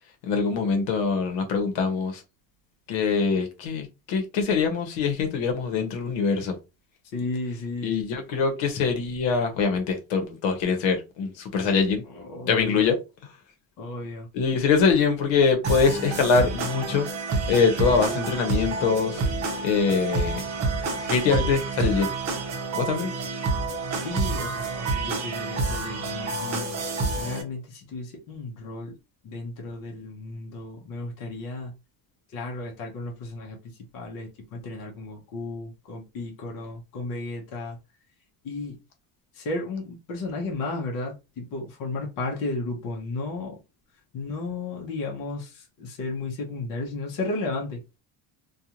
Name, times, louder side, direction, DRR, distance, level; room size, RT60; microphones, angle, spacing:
voice 1, 0.2-2.2 2.9-6.6 7.8-12.0 12.4-13.0 14.3-17.1 17.5-19.2 19.6-20.4 21.1-22.1 22.7-23.1, left 5 dB, 75° left, 1.0 m, -23 dB
voice 2, 7.1-7.9 12.1-12.9 13.8-14.3 17.9-18.3 24.0-26.7 27.2-29.0 29.2-31.7 32.3-37.8 38.4-38.8 39.3-43.6 44.1-48.0, left 2 dB, 45° left, 0.8 m, -34 dB
sound 1, 15.6-27.4, right 3 dB, 35° right, 0.7 m, -28 dB
2.5 x 2.3 x 2.8 m
cardioid pair, 170°, 46 cm